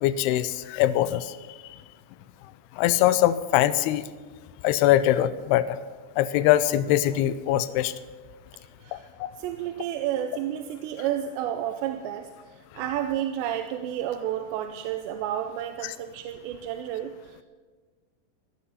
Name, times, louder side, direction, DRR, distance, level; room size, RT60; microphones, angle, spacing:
voice 1, 0.0-1.2 2.8-4.0 4.6-5.7 6.2-7.9, left 13 dB, 80° left, 13 dB, 2.4 m, -22 dB
voice 2, 9.4-12.3 12.8-17.1, right 11 dB, 85° right, 7 dB, 2.8 m, -31 dB
15.5 x 13.5 x 5.5 m, 1.4 s
omnidirectional pair, 5.0 m